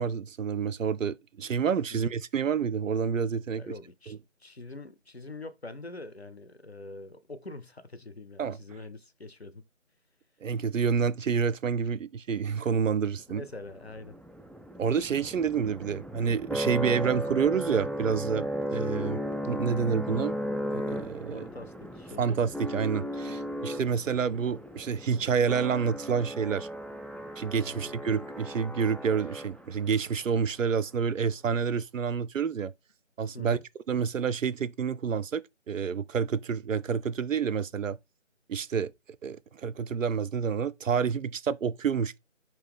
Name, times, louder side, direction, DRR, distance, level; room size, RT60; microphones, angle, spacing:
voice 1, 0.0-3.6 4.1-4.2 8.4-8.6 10.4-13.5 14.8-19.2 19.5-20.4 20.7-21.5 22.2-26.7 27.4-32.7 33.2-33.6 33.9-35.4 35.7-38.0 38.5-38.9 39.2-42.2, right 6 dB, 75° right, 0.5 m, -28 dB
voice 2, 3.5-9.6 13.3-14.2 21.3-22.3 23.3-23.6 27.6-27.9 33.3-33.6, left 2 dB, 55° left, 0.6 m, -44 dB
sound 1, 13.7-29.9, equal, 5° left, 0.3 m, -36 dB
4.7 x 2.7 x 3.5 m
figure-of-eight pair, 175°, 39 cm